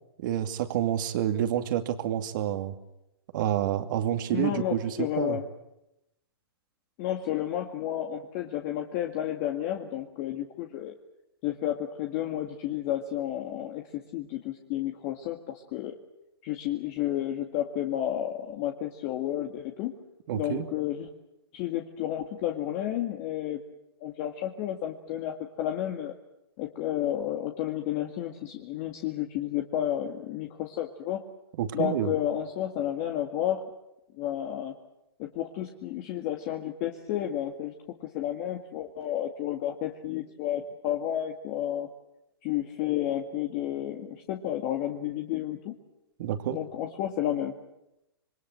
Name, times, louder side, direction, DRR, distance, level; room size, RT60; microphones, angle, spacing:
voice 1, 0.2-2.7 3.3-5.4 20.3-20.7 31.6-32.1 46.2-46.6, right 11 dB, 50° right, 7 dB, 2.5 m, -28 dB
voice 2, 4.3-5.5 7.0-10.9 11.4-15.9 16.4-19.9 20.3-21.1 21.5-23.6 24.0-26.1 26.6-31.2 31.7-33.6 34.2-34.7 35.2-41.9 42.4-45.7 46.5-47.5, left 11 dB, 35° left, 3 dB, 2.0 m, -31 dB
27.0 x 23.0 x 7.7 m, 0.90 s
hypercardioid pair, 130°, 13 cm